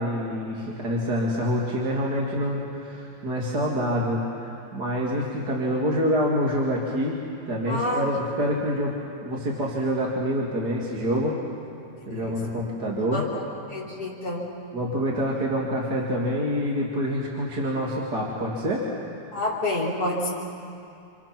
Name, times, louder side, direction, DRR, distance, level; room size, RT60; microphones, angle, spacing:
voice 1, 0.0-7.2 7.5-8.9 9.2-11.4 12.1-13.2 14.7-18.8, equal, 45° right, -3 dB, 2.9 m, -26 dB
voice 2, 7.7-8.0 12.0-12.4 13.1-13.4 13.7-14.5 19.3-20.3, left 1 dB, 45° left, -4 dB, 4.4 m, -29 dB
29.5 x 28.0 x 6.0 m, 2.6 s
omnidirectional pair, 2.4 m